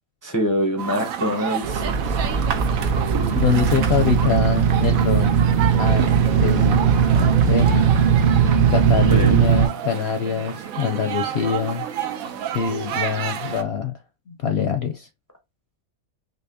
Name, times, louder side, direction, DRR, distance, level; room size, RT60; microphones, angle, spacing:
voice 1, 0.2-1.9 9.1-9.4, equal, 25° left, 0.4 m, -24 dB
sound 1, 0.8-13.6, right 9 dB, 90° right, 1.1 m, -30 dB
sound 2, 1.6-9.7, right 7 dB, 60° right, 0.5 m, -18 dB
voice 2, 3.3-5.3 5.8-6.1 6.4-6.8 7.1-7.8 8.7-11.8 12.5-13.9 14.3-15.1, left 6 dB, 65° left, 0.7 m, -24 dB
5.4 x 2.0 x 2.6 m
omnidirectional pair, 1.4 m